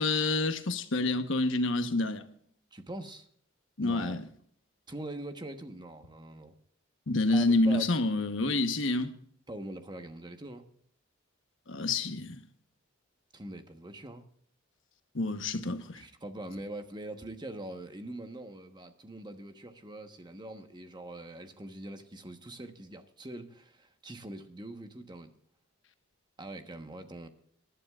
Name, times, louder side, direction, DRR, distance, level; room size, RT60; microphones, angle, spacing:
voice 1, 0.0-2.2 3.8-4.2 7.1-9.1 11.7-12.4 15.1-16.0, left 2 dB, 65° left, 1.1 m, -28 dB
voice 2, 2.7-3.3 3.8-4.2 4.9-6.5 7.3-7.9 9.5-10.7 13.3-14.3 15.9-25.3 26.4-27.3, right 1 dB, 20° right, 1.2 m, -43 dB
26.5 x 11.5 x 2.4 m
head